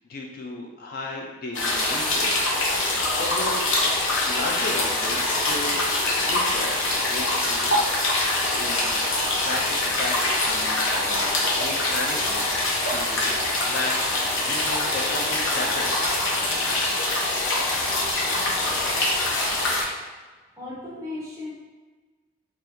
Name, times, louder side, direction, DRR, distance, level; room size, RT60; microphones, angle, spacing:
voice 1, 0.0-2.5 3.1-3.6 4.0-7.9 8.6-9.0 9.4-12.5 12.9-16.1, left 2 dB, 45° left, 0 dB, 0.3 m, -35 dB
sound 1, 1.5-19.8, left 2 dB, 75° left, 0.7 m, -24 dB
voice 2, 20.6-21.5, left 2 dB, 15° right, -5 dB, 0.6 m, -35 dB
2.7 x 2.3 x 3.4 m, 1.3 s
head